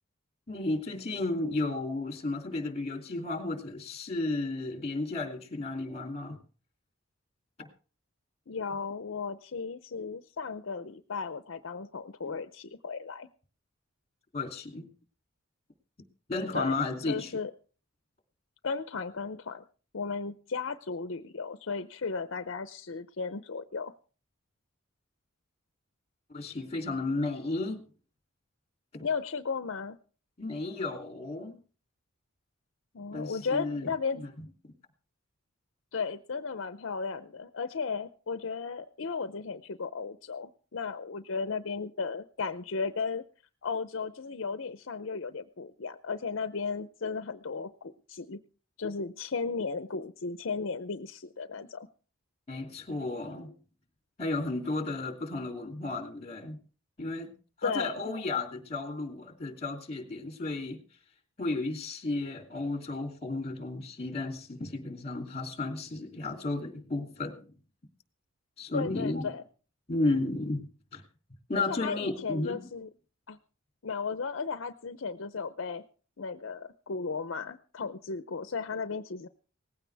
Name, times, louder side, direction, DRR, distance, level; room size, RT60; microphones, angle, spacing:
voice 1, 0.5-6.4 7.6-7.7 12.3-12.4 14.3-14.9 16.3-17.4 26.3-27.9 28.9-29.1 30.4-31.6 33.1-33.9 34.2-34.3 52.5-53.5 54.2-56.6 57.0-57.3 57.6-60.8 61.4-67.6 68.6-69.3 69.9-71.0 71.5-72.6, left 2 dB, 30° left, 4 dB, 2.8 m, -33 dB
voice 2, 8.5-13.3 16.5-16.7 17.1-17.5 18.6-19.6 19.9-23.9 29.0-30.0 32.9-34.2 35.9-43.2 43.6-48.4 48.8-51.9 57.6-58.0 68.7-69.4 71.7-72.9 73.3-73.4 73.8-75.8 76.2-79.3, left 5 dB, 65° left, 11 dB, 0.6 m, -35 dB
19.0 x 15.5 x 3.4 m, 0.39 s
head